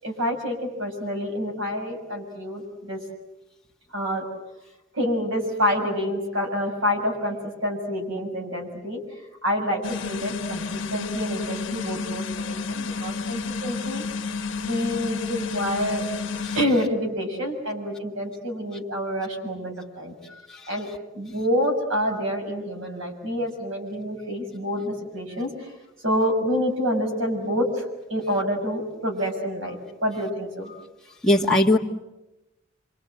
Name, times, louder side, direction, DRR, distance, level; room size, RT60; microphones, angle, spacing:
voice 1, 0.0-3.0 3.9-4.2 4.9-9.0 9.4-10.6 10.9-14.0 14.6-16.0 16.5-20.1 20.7-20.9 21.1-25.7 26.0-30.7, equal, 75° right, 3 dB, 6.8 m, -27 dB
sound 1, 9.8-16.7, left 4 dB, 65° left, 1.3 m, -31 dB
voice 2, 31.2-31.8, left 1 dB, 5° left, -3 dB, 1.8 m, -20 dB
27.5 x 25.5 x 7.8 m, 0.99 s
head